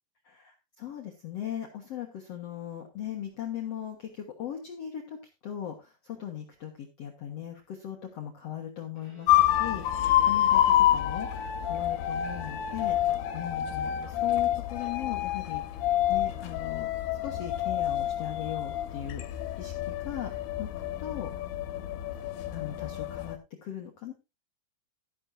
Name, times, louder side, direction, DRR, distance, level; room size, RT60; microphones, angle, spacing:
voice 1, 0.2-5.2 5.4-10.6 10.9-13.0 13.3-16.9 17.2-20.3 20.6-20.7 21.0-21.3 22.5-24.1, left 10 dB, 55° left, 1 dB, 1.9 m, -39 dB
Bowed string instrument, 8.9-13.7, right 6 dB, 55° right, 7.6 m, -53 dB
sound 1, 9.3-23.4, left 12 dB, 85° left, 2.9 m, -28 dB
13.0 x 11.0 x 2.6 m, 0.26 s
omnidirectional pair, 4.5 m